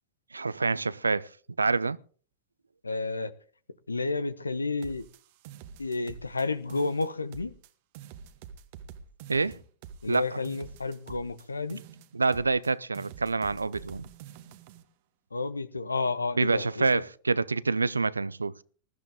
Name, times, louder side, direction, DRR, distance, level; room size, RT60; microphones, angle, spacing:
voice 1, 0.3-1.3 1.6-2.0 9.3-9.6 10.1-10.4 12.1-14.0 16.4-18.5, right 4 dB, 80° right, 0.6 m, -27 dB
voice 2, 2.8-3.3 3.9-5.1 5.8-7.5 10.0-11.8 15.3-17.0, left 3 dB, 80° left, 1.0 m, -31 dB
sound 1, 4.8-6.4 6.7-7.7 7.9-11.4 11.7-12.7 12.9-14.8, right 8 dB, 50° right, 1.3 m, -47 dB
20.5 x 14.0 x 3.7 m
figure-of-eight pair, 90°, 0 cm